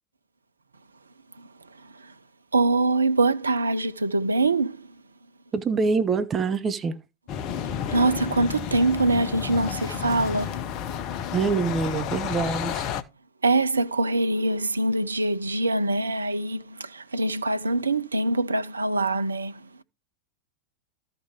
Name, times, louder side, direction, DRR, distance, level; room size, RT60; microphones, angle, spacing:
voice 1, 1.4-2.1 2.5-5.0 7.9-10.6 13.4-19.8, right 2 dB, 75° right, 0.6 m, -24 dB
voice 2, 5.5-6.9 11.3-12.9, right 4 dB, 20° right, 1.2 m, -25 dB
sound 1, 7.3-13.0, left 8 dB, 40° left, 0.9 m, -31 dB
13.5 x 5.2 x 4.8 m
figure-of-eight pair, 90°, 0 cm